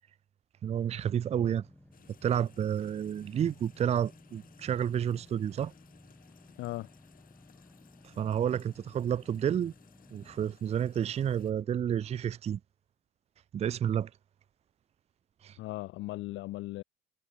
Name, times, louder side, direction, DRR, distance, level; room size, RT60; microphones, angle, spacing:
voice 1, 0.6-1.6 2.2-5.7 8.2-9.7 10.1-12.6 13.5-14.1 15.4-15.6, right 9 dB, 30° right, 0.5 m, -30 dB
sound 1, 1.3-10.5, left 1 dB, 5° left, 4.6 m, -57 dB
sound 2, 1.9-11.5, left 9 dB, 45° left, 4.5 m, -62 dB
voice 2, 6.6-6.9 15.6-16.8, left 18 dB, 65° left, 1.0 m, -37 dB
supercardioid pair, 105°, 21 cm